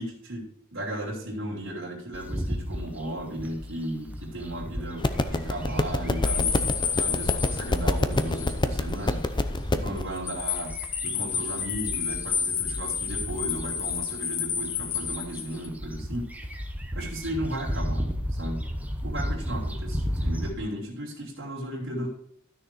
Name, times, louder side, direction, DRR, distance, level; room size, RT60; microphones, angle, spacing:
voice 1, 0.0-10.8 11.0-16.3 16.9-18.6 19.0-22.1, right 1 dB, 65° right, -5 dB, 2.9 m, -35 dB
sound 1, 2.1-20.5, equal, 10° right, 1.1 m, -35 dB
sound 2, 5.0-10.0, left 2 dB, 20° left, 0.6 m, -27 dB
sound 3, 6.2-8.6 8.9-9.0 10.0-15.7, left 7 dB, 65° left, 1.5 m, -30 dB
13.0 x 6.5 x 4.5 m, 0.71 s
head